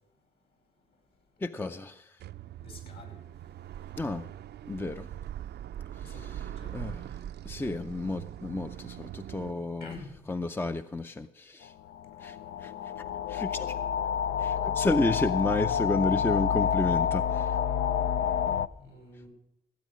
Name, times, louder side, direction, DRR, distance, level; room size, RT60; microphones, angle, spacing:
voice 1, 1.4-2.1 4.0-4.2 4.7-5.1 6.0-7.0 7.4-10.0 10.3-11.7 12.2-12.4 12.6-12.7 13.3-13.7 14.4-17.5, left 2 dB, 10° left, 0.5 m, -31 dB
sound 1, 2.2-9.5, right 11 dB, 55° right, 0.5 m, -41 dB
voice 2, 2.6-3.2 6.0-7.0 9.5-10.1 18.4-19.3, left 2 dB, 55° left, 5.0 m, -48 dB
sound 2, 11.9-18.7, left 8 dB, 75° left, 0.5 m, -28 dB
16.5 x 8.4 x 6.3 m
cardioid pair, 90°, 20 cm